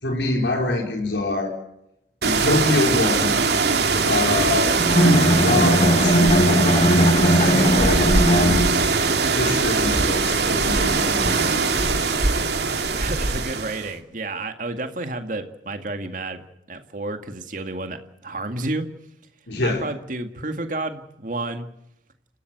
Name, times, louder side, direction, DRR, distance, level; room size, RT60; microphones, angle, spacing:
voice 1, 0.0-1.5 2.2-3.3 4.0-6.5 7.2-8.8 9.3-12.0 19.5-19.8, left 2 dB, 80° left, 1 dB, 4.5 m, -25 dB
sound 1, 2.2-13.9, right 4 dB, 65° right, 2.6 m, -21 dB
Bowed string instrument, 4.8-9.1, equal, 35° left, 1.5 m, -19 dB
voice 2, 12.9-16.4 16.7-18.9 19.6-21.7, right 2 dB, 45° right, 7 dB, 2.0 m, -30 dB
29.5 x 15.5 x 8.0 m, 0.84 s
head